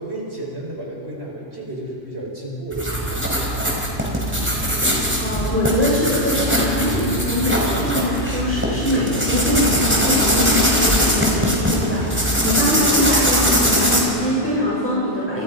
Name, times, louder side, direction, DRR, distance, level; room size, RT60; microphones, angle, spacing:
voice 1, 0.0-3.4, right 1 dB, 75° right, -2 dB, 5.6 m, -32 dB
sound 1, 2.7-14.0, equal, 10° right, 4.6 m, -21 dB
voice 2, 5.2-15.4, left 1 dB, 10° left, -8 dB, 7.7 m, -22 dB
sound 2, 10.5-10.9 13.3-13.8, equal, 60° left, 5.6 m, -34 dB
29.5 x 28.5 x 5.5 m, 2.9 s
omnidirectional pair, 1.1 m